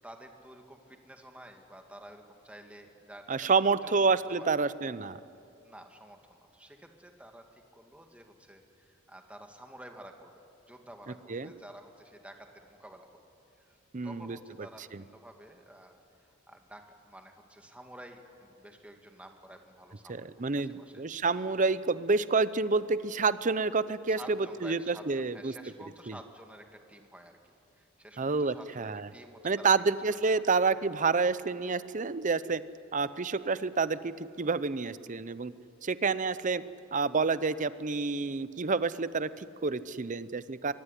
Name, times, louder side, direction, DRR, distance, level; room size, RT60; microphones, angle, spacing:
voice 1, 0.0-3.5 3.8-4.0 4.3-4.5 5.6-10.3 10.7-13.2 13.6-13.8 14.0-21.0 24.1-27.4 27.8-29.9 30.3-30.5, right 1 dB, 5° right, 4 dB, 2.0 m, -51 dB
voice 2, 3.3-5.2 11.3-11.5 13.9-14.4 14.9-15.0 20.1-24.4 24.6-25.5 26.1-26.2 28.2-29.1 29.4-32.6 32.9-35.5 35.8-36.6 36.9-40.7, right 4 dB, 40° right, 15 dB, 0.7 m, -28 dB
24.0 x 23.0 x 10.0 m, 2.6 s
head